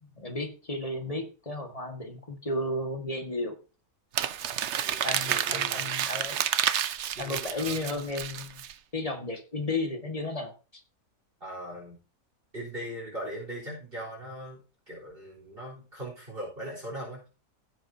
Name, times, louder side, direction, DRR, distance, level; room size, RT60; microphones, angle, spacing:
voice 1, 0.0-3.6 5.0-6.4 7.2-8.6 8.9-10.8, left 2 dB, 25° left, 4 dB, 1.7 m, -33 dB
Crumpling crinkling, 4.1-8.7, right 10 dB, 60° right, 0.8 m, -30 dB
voice 2, 4.8-6.1 7.1-8.0 11.4-12.0 12.5-14.6 14.9-17.3, right 1 dB, 35° right, -3 dB, 4.0 m, -40 dB
16.0 x 7.6 x 2.7 m, 0.33 s
omnidirectional pair, 1.6 m